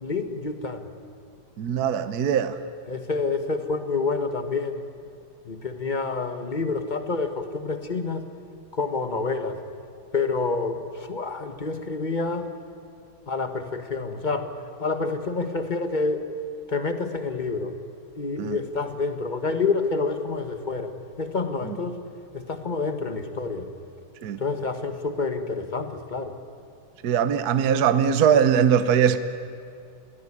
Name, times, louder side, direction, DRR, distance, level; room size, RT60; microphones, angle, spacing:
voice 1, 0.0-0.8 2.9-4.8 5.5-8.2 8.7-9.6 10.1-12.5 13.3-14.5 14.8-16.3 16.7-17.8 18.2-20.9 21.2-22.0 22.3-23.7 24.4-26.3, left 4 dB, 25° left, 8 dB, 1.4 m, -28 dB
voice 2, 1.6-2.6 18.4-18.6 21.6-21.8 24.2-24.4 27.0-29.2, right 8 dB, 55° right, 11 dB, 1.3 m, -21 dB
27.5 x 18.5 x 9.9 m, 2.5 s
omnidirectional pair, 2.3 m